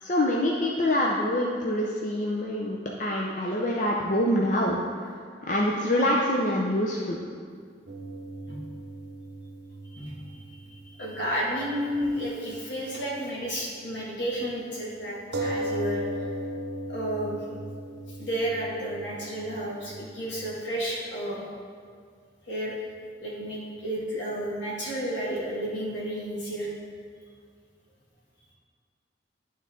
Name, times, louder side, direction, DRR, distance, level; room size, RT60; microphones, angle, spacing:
voice 1, 0.0-7.2, left 1 dB, 40° left, -2 dB, 0.5 m, -26 dB
sound 1, 7.9-11.7 12.0-12.1 15.3-20.5, right 1 dB, 65° right, 0.8 m, -37 dB
voice 2, 10.5-16.1 16.9-17.4 18.2-21.4 22.5-22.7 23.2-26.7, equal, 80° left, -5 dB, 2.0 m, -32 dB
11.0 x 3.9 x 3.8 m, 2.1 s
head